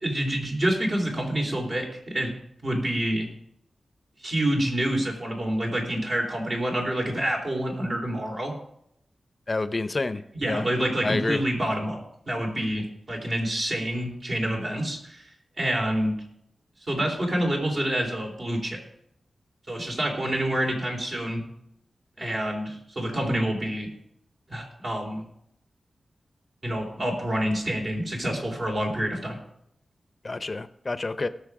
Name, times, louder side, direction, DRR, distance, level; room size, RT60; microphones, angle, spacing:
voice 1, 0.0-2.3 2.6-3.3 4.2-8.5 10.3-12.0 12.3-15.2 15.6-16.1 16.9-18.8 19.7-21.4 22.2-23.9 24.5-25.3 26.6-29.4, right 1 dB, 55° right, 0 dB, 3.7 m, -27 dB
voice 2, 9.5-10.2 10.5-10.6 11.0-11.4 30.2-31.3, left 3 dB, 40° left, 12 dB, 0.6 m, -28 dB
18.5 x 6.6 x 4.9 m, 0.75 s
wide cardioid pair, 70°, 0 cm